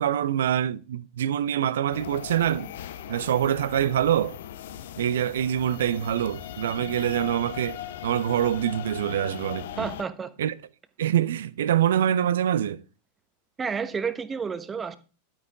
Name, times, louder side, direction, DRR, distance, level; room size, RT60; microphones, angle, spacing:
voice 1, 0.0-2.7 3.1-4.4 5.0-9.9 10.4-10.5 11.0-12.8, right 10 dB, 60° right, 0.6 m, -25 dB
sound 1, 1.9-10.0, left 11 dB, 55° left, 0.7 m, -39 dB
voice 2, 9.8-10.3 13.6-15.0, right 6 dB, 15° right, 1.1 m, -30 dB
11.5 x 8.8 x 3.5 m
figure-of-eight pair, 90°, 0 cm